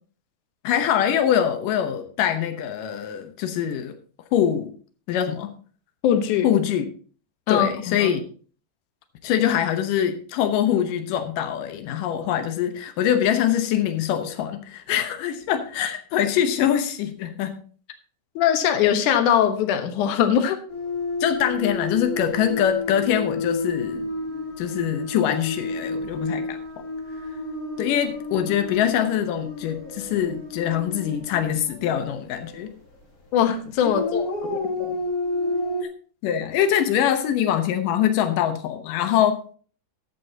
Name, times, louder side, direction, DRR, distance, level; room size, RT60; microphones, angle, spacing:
voice 1, 0.6-4.0 4.3-4.7 5.1-5.5 6.4-6.8 7.5-8.2 9.2-17.6 21.2-24.1 24.6-26.9 27.8-32.7 36.2-39.4, left 10 dB, 90° left, 8 dB, 2.6 m, -23 dB
voice 2, 6.0-6.5 7.5-8.1 18.4-20.6 33.3-35.0, left 9 dB, 75° left, 7 dB, 2.6 m, -21 dB
sound 1, 20.7-32.7 33.8-35.8, left 2 dB, 30° left, 3.3 m, -31 dB
13.5 x 11.0 x 2.8 m, 0.41 s
omnidirectional pair, 3.7 m